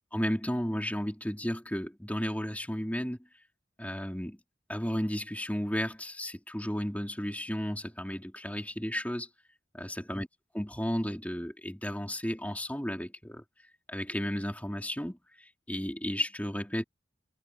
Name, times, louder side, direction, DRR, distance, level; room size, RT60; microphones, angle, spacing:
voice 1, 0.1-3.3 3.8-4.4 4.7-9.3 9.7-10.3 10.5-13.4 13.9-16.8, equal, 10° left, 4.7 m, -33 dB
head